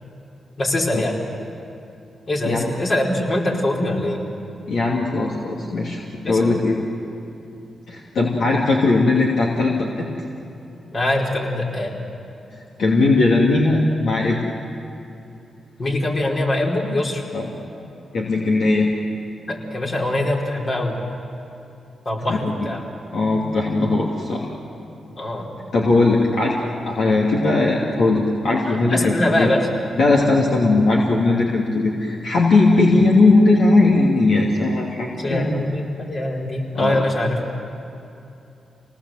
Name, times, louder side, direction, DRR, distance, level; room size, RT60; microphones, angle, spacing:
voice 1, 0.6-1.2 2.3-4.2 6.2-6.5 10.9-11.9 15.8-17.2 19.5-21.0 22.1-22.8 25.1-25.5 28.7-29.7 35.2-37.4, left 1 dB, 50° left, -2 dB, 5.1 m, -23 dB
voice 2, 4.7-6.0 6.3-6.8 7.9-10.1 12.8-14.4 17.3-17.5 18.1-18.9 22.3-22.4 23.1-24.5 25.7-26.6 26.9-29.5 30.0-35.6 36.8-37.0, left 2 dB, 75° left, -3 dB, 2.8 m, -18 dB
28.0 x 19.0 x 8.0 m, 2.8 s
supercardioid pair, 50°, 0 cm